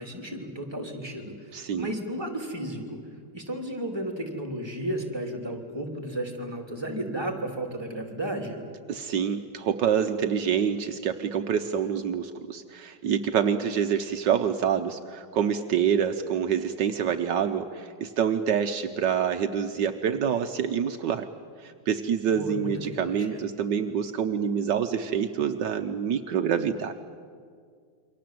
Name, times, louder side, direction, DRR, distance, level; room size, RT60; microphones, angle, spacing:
voice 1, 0.0-3.0 3.3-8.6 22.3-23.4, right 1 dB, 15° right, 3 dB, 3.3 m, -33 dB
voice 2, 1.5-1.9 8.9-21.3 21.6-26.9, right 8 dB, 75° right, 7 dB, 1.5 m, -26 dB
28.5 x 24.0 x 7.8 m, 2.1 s
omnidirectional pair, 2.0 m